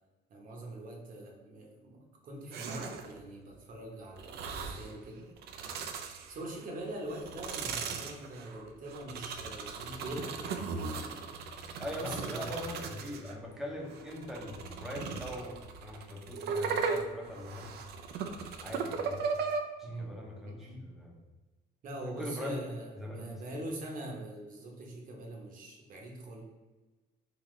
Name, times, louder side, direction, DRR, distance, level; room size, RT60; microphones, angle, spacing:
voice 1, 0.3-5.3 6.3-11.2 11.9-12.6 19.8-20.1 20.5-20.9 21.8-26.4, right 1 dB, 55° right, 0 dB, 1.0 m, -43 dB
sound 1, 2.5-3.2 4.2-4.9 5.4-6.6 7.1-13.4 13.9-19.6, right 5 dB, 70° right, 0.4 m, -37 dB
voice 2, 11.8-17.7 18.6-19.2 19.8-21.2 22.0-22.6 22.9-23.4, left 1 dB, ahead, -1 dB, 0.8 m, -41 dB
3.9 x 2.8 x 3.2 m, 1.2 s
cardioid pair, 110°, 17 cm